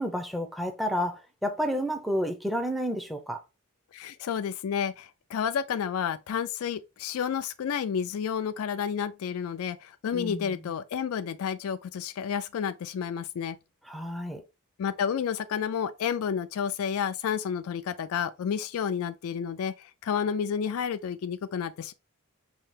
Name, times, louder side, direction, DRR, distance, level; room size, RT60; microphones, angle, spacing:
voice 1, 0.0-3.4 10.1-10.6 13.9-14.4, equal, ahead, 0.6 m, -30 dB
voice 2, 3.9-13.6 14.8-21.9, left 7 dB, 70° left, 0.3 m, -30 dB
5.5 x 2.8 x 3.2 m
head